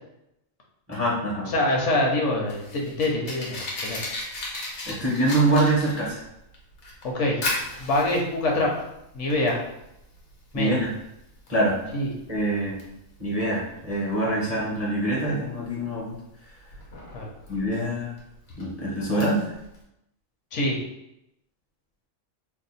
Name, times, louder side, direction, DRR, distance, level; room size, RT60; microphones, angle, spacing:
voice 1, 0.9-1.5 4.9-6.2 10.5-10.8 11.5-11.8 12.3-12.8 13.2-16.1 17.5-18.1 18.6-19.4, right 1 dB, 15° right, -5 dB, 0.5 m, -24 dB
voice 2, 1.4-4.0 7.0-7.5 7.8-8.7 9.1-9.6 10.5-10.8 11.9-12.1 17.1-17.3 20.5-20.8, left 1 dB, 65° left, -1 dB, 1.0 m, -25 dB
Fire, 2.1-19.8, left 2 dB, 85° left, 1.3 m, -37 dB
2.7 x 2.2 x 4.0 m, 0.84 s
omnidirectional pair, 1.4 m